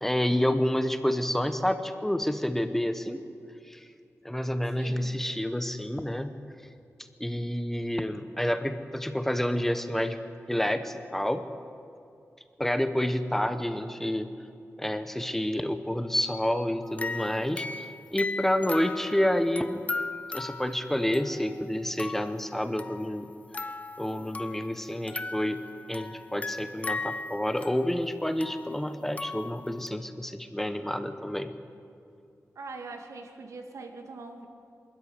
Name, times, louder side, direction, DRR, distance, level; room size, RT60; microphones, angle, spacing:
voice 1, 0.0-3.2 3.7-3.9 4.2-6.3 7.2-10.2 10.5-11.4 12.6-14.3 14.8-19.8 20.3-23.3 24.0-25.6 25.9-31.5, left 1 dB, 5° left, 9 dB, 0.9 m, -29 dB
voice 2, 4.7-5.2 32.6-34.5, right 3 dB, 90° right, 4 dB, 2.3 m, -42 dB
sound 1, 16.9-22.4 22.8-24.8 25.1-29.9, left 3 dB, 30° left, 0.6 m, -37 dB
24.0 x 13.5 x 9.6 m, 2.4 s
wide cardioid pair, 175°, 5 cm